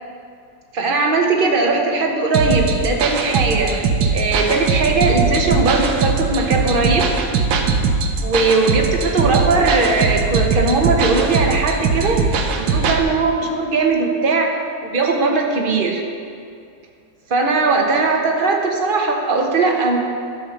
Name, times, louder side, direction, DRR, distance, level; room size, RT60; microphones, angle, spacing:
voice 1, 0.7-7.1 8.2-14.5 14.8-16.0 17.3-20.0, right 3 dB, 35° right, 1 dB, 0.9 m, -19 dB
sound 1, 2.3-13.0, right 4 dB, 75° right, 1.5 m, -20 dB
12.5 x 5.1 x 6.5 m, 2.4 s
omnidirectional pair, 2.1 m